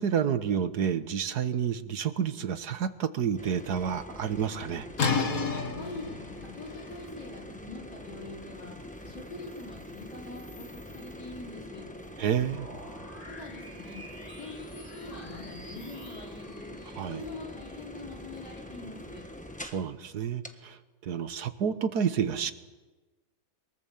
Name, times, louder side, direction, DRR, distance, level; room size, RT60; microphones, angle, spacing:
voice 1, 0.0-4.9 12.2-12.7 17.0-17.2 19.7-20.8 21.0-22.5, right 8 dB, 70° right, 11 dB, 1.7 m, -29 dB
sound 1, 3.4-19.9 20.4-20.5, left 1 dB, 5° left, 1.2 m, -44 dB
sound 2, 5.0-10.6, left 5 dB, 55° left, 2.1 m, -34 dB
voice 2, 6.4-11.9 13.3-14.0 14.4-16.7 17.1-19.2, left 2 dB, 80° left, -1 dB, 5.2 m, -44 dB
sound 3, 8.7-19.7, equal, 20° left, 4.3 m, -51 dB
23.5 x 22.0 x 7.2 m, 1.2 s
omnidirectional pair, 1.8 m